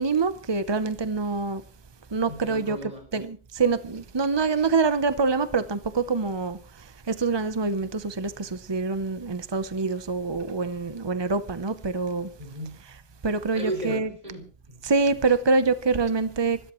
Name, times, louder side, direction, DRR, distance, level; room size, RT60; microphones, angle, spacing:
voice 1, 0.0-1.6 2.1-12.3 12.8-14.1 14.8-16.6, right 4 dB, 40° right, 0.3 m, -26 dB
voice 2, 2.3-3.0 12.4-12.8 13.5-14.8, right 1 dB, 25° right, 6.1 m, -35 dB
26.0 x 13.5 x 3.1 m
omnidirectional pair, 1.7 m